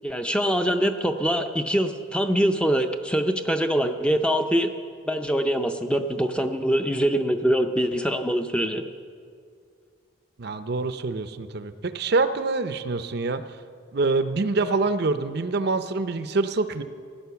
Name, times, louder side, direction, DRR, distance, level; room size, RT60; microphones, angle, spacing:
voice 1, 0.0-4.7 5.1-8.9, equal, 5° left, 6 dB, 0.5 m, -24 dB
voice 2, 10.4-13.4 13.9-16.8, right 3 dB, 50° right, 11 dB, 0.6 m, -25 dB
16.0 x 10.5 x 6.9 m, 2.2 s
head